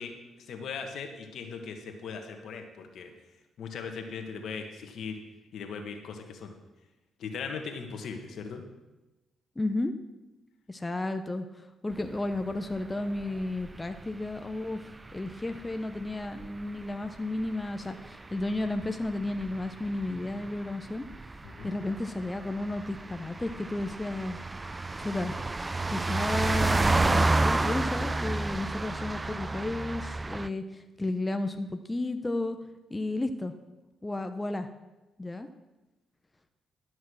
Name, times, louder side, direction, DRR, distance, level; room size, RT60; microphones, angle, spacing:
voice 1, 0.0-3.1 3.6-5.2 5.5-6.5 7.2-8.6 21.4-21.7, left 5 dB, 70° left, 5 dB, 1.5 m, -39 dB
voice 2, 9.6-9.9 10.7-21.1 21.6-24.4 25.0-25.4 25.9-32.6 32.9-33.5 34.0-34.7 35.2-35.5, left 2 dB, 20° left, 7 dB, 0.8 m, -33 dB
sound 1, 11.9-30.5, right 2 dB, 25° right, 0.3 m, -31 dB
11.5 x 6.3 x 6.4 m, 1.1 s
supercardioid pair, 65°, 0 cm